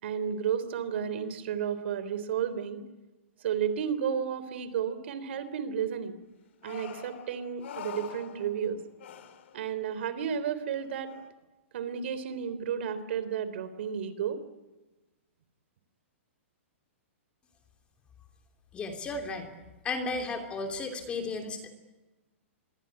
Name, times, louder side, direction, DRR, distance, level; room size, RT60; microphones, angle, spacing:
voice 1, 0.0-2.8 3.4-6.1 6.6-8.8 9.5-11.2 11.7-14.4, right 8 dB, 55° right, 13 dB, 3.5 m, -32 dB
sound 1, 6.6-8.7 9.0-9.6 9.9-10.0 10.8-11.3, left 8 dB, 60° left, 3.1 m, -45 dB
voice 2, 18.7-19.5 19.8-21.7, left 3 dB, 15° left, 4 dB, 3.0 m, -34 dB
26.5 x 21.5 x 9.7 m, 1.1 s
hypercardioid pair, 160°, 7 cm